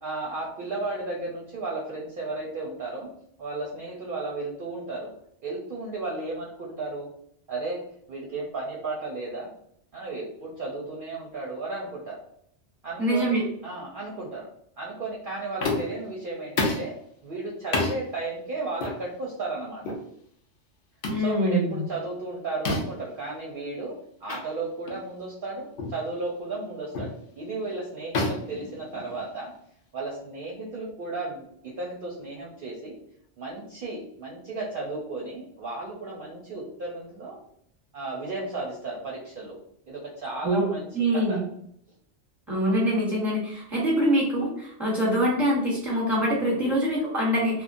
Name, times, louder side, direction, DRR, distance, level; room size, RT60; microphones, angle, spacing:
voice 1, 0.0-3.1 3.4-5.1 5.4-7.1 7.5-7.8 8.1-9.5 9.9-12.2 12.8-14.5 14.8-17.0 17.2-19.8 21.1-23.9 24.2-29.5 29.9-32.9 33.4-37.4 37.9-39.6 39.9-40.9 41.1-41.4 46.5-46.8, right 3 dB, 55° right, -3 dB, 0.7 m, -34 dB
voice 2, 13.0-13.4 21.1-21.8 40.4-40.7 40.9-41.4 42.5-47.6, equal, ahead, -5 dB, 0.9 m, -24 dB
sound 1, 15.6-16.0 16.6-16.9 17.7-18.0 18.8-19.0 19.8-20.0 21.0-21.3 22.7-23.0 24.3-24.4 24.9-25.0 25.8-26.0 26.9-27.2 28.1-29.4, left 2 dB, 60° left, 0.7 m, -29 dB
2.9 x 2.1 x 2.5 m, 0.68 s
omnidirectional pair, 1.2 m